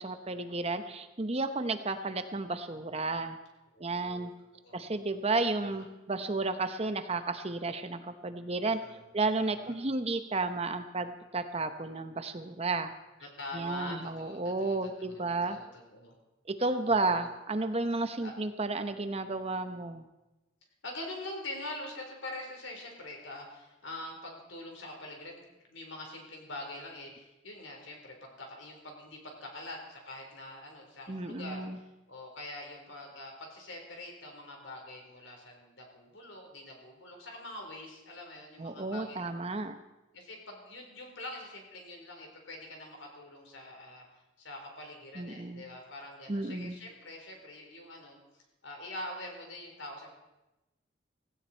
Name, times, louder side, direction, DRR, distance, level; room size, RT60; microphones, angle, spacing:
voice 1, 0.0-3.4 3.8-4.3 4.7-8.8 9.1-12.9 13.5-15.6 16.5-20.1 31.1-31.8 38.6-39.8 45.2-45.6 46.3-46.8, right 3 dB, 30° right, 9 dB, 0.8 m, -32 dB
voice 2, 3.7-4.3 4.6-4.9 5.6-5.8 8.6-9.7 13.2-16.1 16.9-17.3 18.2-18.3 20.8-25.4 25.7-39.3 40.1-44.0 44.4-48.2 48.6-50.1, left 1 dB, 70° left, 1 dB, 4.2 m, -44 dB
17.0 x 16.5 x 4.5 m, 1.0 s
head